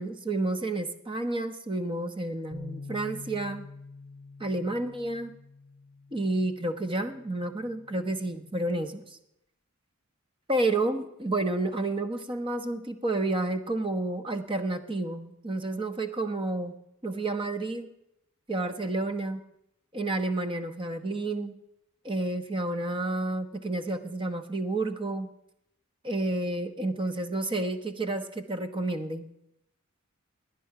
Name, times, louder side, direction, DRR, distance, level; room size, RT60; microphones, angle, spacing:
voice 1, 0.0-3.7 4.4-5.3 6.1-9.2 10.5-16.8 17.0-17.9 18.5-19.4 19.9-21.5 22.0-25.3 26.0-29.3, right 2 dB, 25° right, 8 dB, 1.0 m, -30 dB
Bass guitar, 2.5-8.7, left 3 dB, ahead, 4.1 m, -47 dB
18.5 x 10.0 x 5.9 m, 0.82 s
head